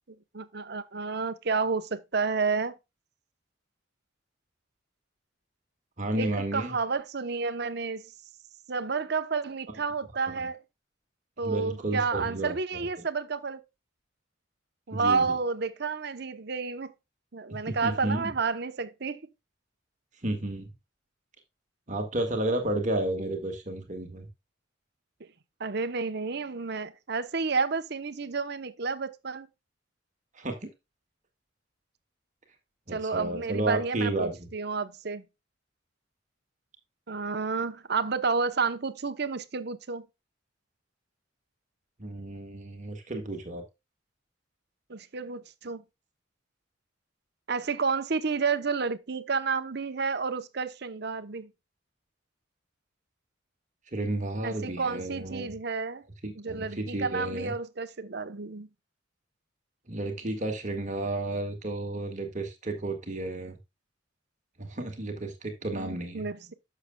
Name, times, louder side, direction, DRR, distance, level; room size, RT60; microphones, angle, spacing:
voice 1, 0.1-2.8 6.2-8.1 8.7-10.6 11.4-13.6 14.9-16.9 17.3-19.2 25.6-29.5 32.9-35.2 37.1-40.1 44.9-45.8 47.5-51.5 54.4-56.0 56.3-58.7 65.7-66.5, right 4 dB, 60° right, 0.9 m, -30 dB
voice 2, 6.0-6.8 10.3-10.4 11.4-12.5 14.9-15.2 17.7-18.3 20.2-20.7 21.9-24.3 30.4-30.7 32.9-34.4 42.0-43.6 53.9-55.6 56.2-57.5 59.9-63.6 64.6-66.2, right 2 dB, 40° right, 1.8 m, -32 dB
11.5 x 6.7 x 2.3 m
head